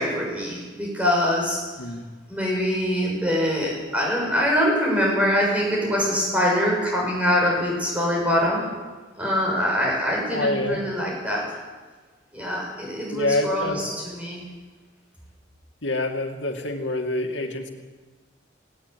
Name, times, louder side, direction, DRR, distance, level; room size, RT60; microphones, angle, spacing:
voice 1, 0.0-1.6 2.3-8.7 9.2-11.4 12.3-14.4, equal, 5° right, -3 dB, 6.7 m, -24 dB
voice 2, 10.3-10.9 13.1-13.8 15.8-17.7, left 2 dB, 80° left, 4 dB, 2.4 m, -26 dB
18.5 x 17.5 x 8.4 m, 1.4 s
head